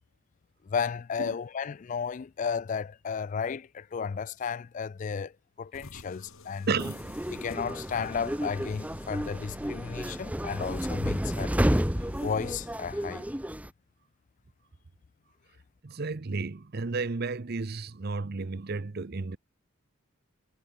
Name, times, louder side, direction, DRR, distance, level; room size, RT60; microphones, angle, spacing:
voice 1, 0.7-6.7 7.3-11.6 12.2-13.3, left 6 dB, 35° left, 0.3 m, -33 dB
sound 1, 5.7-12.7, left 2 dB, 75° left, 2.8 m, -48 dB
voice 2, 6.7-7.3 15.8-19.4, right 4 dB, 45° right, 0.7 m, -32 dB
sound 2, 6.8-13.7, equal, 5° right, 1.0 m, -31 dB
head